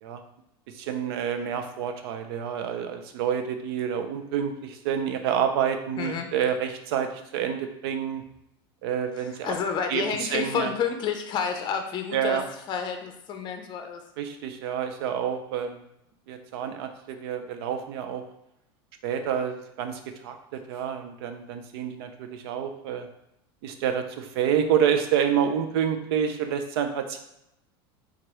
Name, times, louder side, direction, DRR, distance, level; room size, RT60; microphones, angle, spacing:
voice 1, 0.7-8.2 8.8-9.5 9.9-10.0 10.3-10.7 12.1-12.4 14.2-15.8 16.3-18.2 19.0-23.1 23.6-27.2, right 8 dB, 75° right, 7 dB, 0.5 m, -28 dB
voice 2, 6.0-6.3 9.2-14.0, left 6 dB, 35° left, 5 dB, 0.5 m, -30 dB
4.5 x 2.4 x 3.1 m, 0.84 s
supercardioid pair, 125°, 13 cm